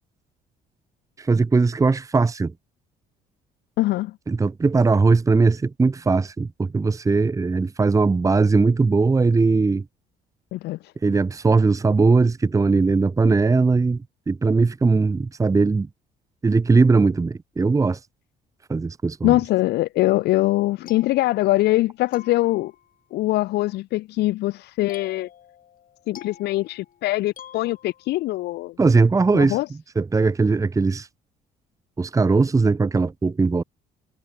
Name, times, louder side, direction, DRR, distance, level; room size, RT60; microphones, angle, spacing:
voice 1, 1.2-2.5 4.3-9.8 11.0-15.9 16.4-18.0 18.7-19.4 28.8-31.1 32.0-33.6, right 4 dB, 20° right, 1.2 m, -19 dB
voice 2, 3.8-4.1 10.5-10.8 19.2-22.7 23.1-25.3 26.1-28.7 29.3-29.7, left 17 dB, 80° left, 1.5 m, -22 dB
sound 1, 20.6-21.8 22.1-23.0 24.9-28.3, left 10 dB, 55° left, 4.4 m, -47 dB
cardioid pair, 110°, 17 cm